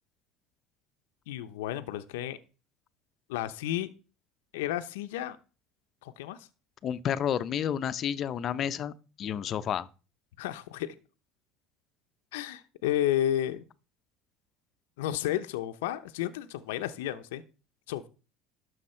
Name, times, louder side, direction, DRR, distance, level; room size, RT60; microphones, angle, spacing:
voice 1, 1.3-2.4 3.3-3.9 4.5-5.4 6.0-6.5 10.4-10.9 12.3-13.6 15.0-17.4 17.9-18.1, left 12 dB, 85° left, 0.7 m, -32 dB
voice 2, 6.8-8.9 9.2-9.9, left 9 dB, 45° left, 0.6 m, -30 dB
12.0 x 6.4 x 4.4 m
supercardioid pair, 105°, 0 cm